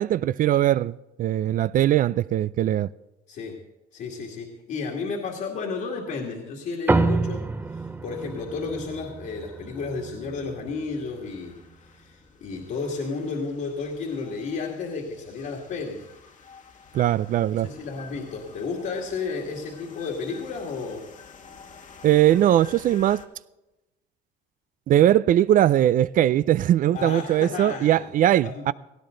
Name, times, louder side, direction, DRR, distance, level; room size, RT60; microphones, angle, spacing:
voice 1, 0.0-2.9 16.9-17.7 22.0-23.2 24.9-28.7, right 12 dB, 55° right, 0.4 m, -20 dB
voice 2, 3.3-3.6 3.9-16.1 17.5-21.0 26.9-28.1 28.4-28.7, left 4 dB, 65° left, 2.3 m, -32 dB
sound 1, 6.9-11.6, right 3 dB, 10° right, 0.6 m, -28 dB
sound 2, 8.1-23.3, left 5 dB, 45° left, 1.6 m, -50 dB
17.5 x 16.0 x 3.9 m
cardioid pair, 110°, 17 cm